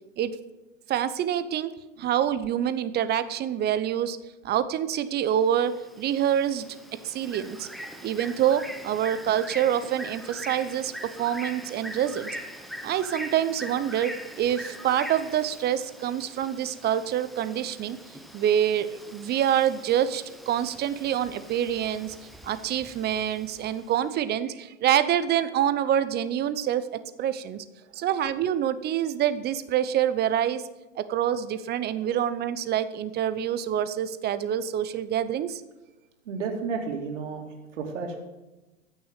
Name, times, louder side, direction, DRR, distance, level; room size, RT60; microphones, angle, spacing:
voice 1, 0.9-1.7 2.0-4.2 4.4-6.7 7.0-7.7 8.0-12.4 12.8-18.0 18.3-22.2 22.4-27.6 27.9-30.6 31.0-35.6, right 10 dB, 25° right, 13 dB, 0.7 m, -26 dB
Bird, 5.2-24.0, equal, ahead, 1.0 m, -42 dB
voice 2, 36.3-38.2, right 5 dB, 70° right, 1 dB, 2.8 m, -32 dB
15.0 x 6.3 x 8.3 m, 1.1 s
hypercardioid pair, 105°, 38 cm